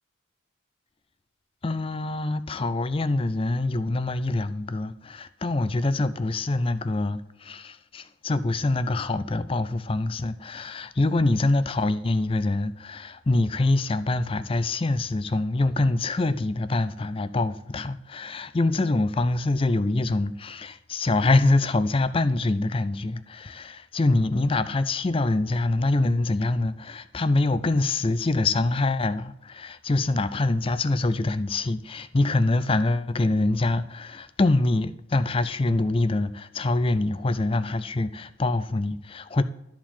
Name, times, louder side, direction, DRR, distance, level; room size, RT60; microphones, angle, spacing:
voice 1, 1.6-39.4, left 2 dB, 25° left, 0.4 m, -25 dB
13.0 x 4.4 x 7.4 m
head